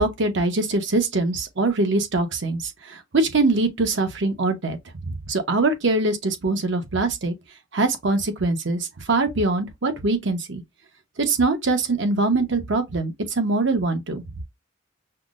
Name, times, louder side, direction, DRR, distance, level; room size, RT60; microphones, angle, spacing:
voice 1, 0.0-4.8 5.0-7.3 7.7-10.6 11.2-14.2, right 3 dB, 65° right, 0.8 m, -23 dB
5.7 x 2.0 x 2.4 m
head